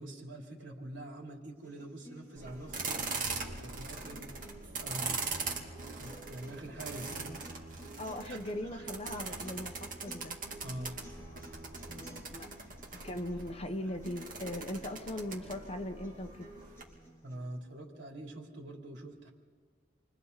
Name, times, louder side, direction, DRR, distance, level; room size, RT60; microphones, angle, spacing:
voice 1, 0.0-4.3 4.8-5.4 5.9-7.4 8.2-8.4 8.7-8.9 9.2-9.4 10.6-11.0 17.2-19.3, right 1 dB, 75° right, -1 dB, 3.5 m, -45 dB
sound 1, 1.6-17.6, right 2 dB, 15° left, 7.7 m, -53 dB
sound 2, 2.3-16.8, right 4 dB, 45° right, 2.5 m, -41 dB
voice 2, 8.0-10.4 11.2-11.3 11.9-12.5 13.0-16.5, left 1 dB, 30° left, 6 dB, 1.1 m, -39 dB
29.0 x 24.0 x 4.1 m, 1.5 s
head